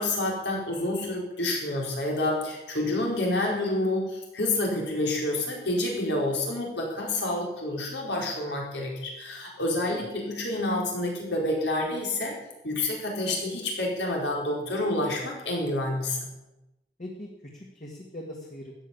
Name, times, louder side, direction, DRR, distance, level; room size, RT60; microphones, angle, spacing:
voice 1, 0.0-12.3 12.6-16.2, left 1 dB, 85° left, -1 dB, 4.8 m, -28 dB
voice 2, 17.0-18.9, left 1 dB, 45° left, -1 dB, 2.0 m, -41 dB
13.5 x 8.9 x 8.5 m, 0.95 s
head